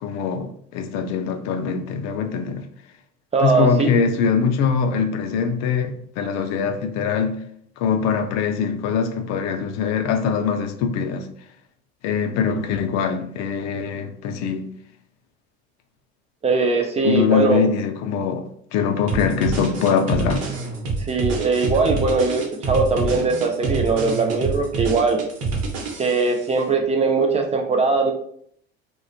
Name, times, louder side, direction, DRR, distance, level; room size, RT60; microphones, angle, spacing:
voice 1, 0.0-2.6 3.4-7.4 7.8-11.3 12.0-14.7 17.0-20.5, left 6 dB, 55° left, 0.4 m, -23 dB
voice 2, 3.3-3.9 12.5-12.6 16.4-17.6 21.0-25.2 26.0-28.1, right 4 dB, 20° right, 0.3 m, -20 dB
sound 1, 19.1-26.4, right 3 dB, 50° right, 0.9 m, -27 dB
2.4 x 2.2 x 2.4 m
hypercardioid pair, 80°, 32 cm